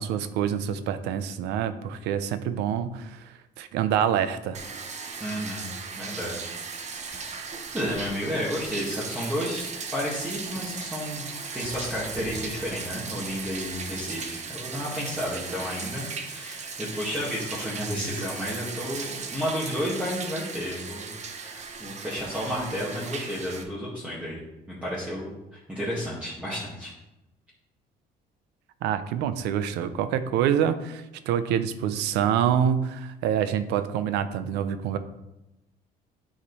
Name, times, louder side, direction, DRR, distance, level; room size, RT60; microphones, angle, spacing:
voice 1, 0.0-3.3 3.6-4.6 28.8-35.0, right 9 dB, 90° right, 11 dB, 0.6 m, -26 dB
Bathtub (filling or washing), 4.5-23.6, right 5 dB, 40° right, 1.0 m, -37 dB
voice 2, 5.2-5.7 6.0-6.5 6.8-7.4 7.7-9.7 9.9-11.2 11.5-24.4 24.7-26.9, equal, 10° right, -8 dB, 1.9 m, -32 dB
8.5 x 5.1 x 4.1 m, 0.94 s
cardioid pair, 110°, 17 cm